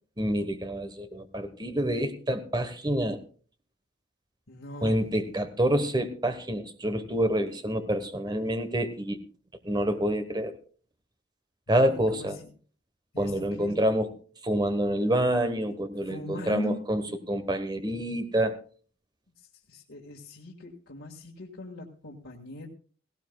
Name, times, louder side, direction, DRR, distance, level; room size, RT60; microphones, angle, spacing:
voice 1, 0.2-3.2 4.8-9.2 9.6-10.5 11.7-12.4 13.2-14.1 14.4-18.6, right 1 dB, 20° right, 9 dB, 1.0 m, -27 dB
voice 2, 4.5-5.0 11.7-12.5 13.1-13.7 16.0-16.8 19.7-22.7, left 2 dB, 85° left, -3 dB, 1.8 m, -41 dB
17.0 x 16.5 x 2.3 m, 0.41 s
head